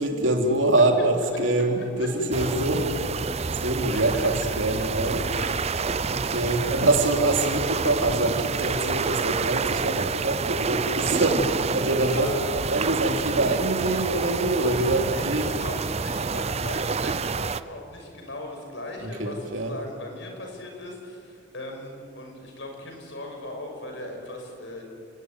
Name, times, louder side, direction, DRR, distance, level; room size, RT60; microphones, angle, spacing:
voice 1, 0.0-2.9 3.6-5.2 6.1-15.5 19.0-19.7, right 2 dB, 80° right, 3 dB, 3.2 m, -24 dB
voice 2, 1.0-1.6 2.0-2.5 3.0-3.1 3.9-4.8 5.2-5.7 6.0-6.2 6.6-6.9 12.0-12.4 15.1-24.8, left 1 dB, 70° left, 2 dB, 6.5 m, -38 dB
sound 1, 2.3-17.6, right 5 dB, 35° right, 0.6 m, -28 dB
30.0 x 19.5 x 9.6 m, 2.5 s
head